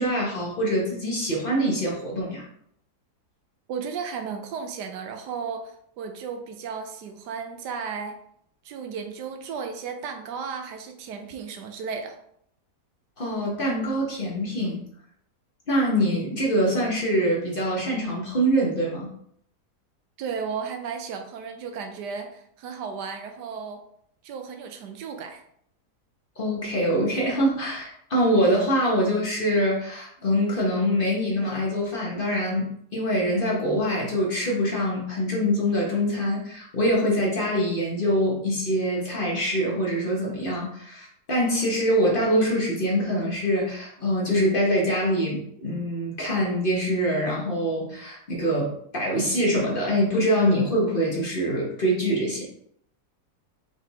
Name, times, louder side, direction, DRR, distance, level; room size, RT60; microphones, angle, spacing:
voice 1, 0.0-2.4 13.2-14.8 15.7-19.1 26.4-52.4, equal, 35° left, -3 dB, 1.1 m, -24 dB
voice 2, 3.7-8.2 8.6-12.2 20.2-23.8 24.2-25.4, right 6 dB, 85° right, 6 dB, 1.3 m, -34 dB
4.5 x 4.0 x 2.8 m, 0.68 s
omnidirectional pair, 1.7 m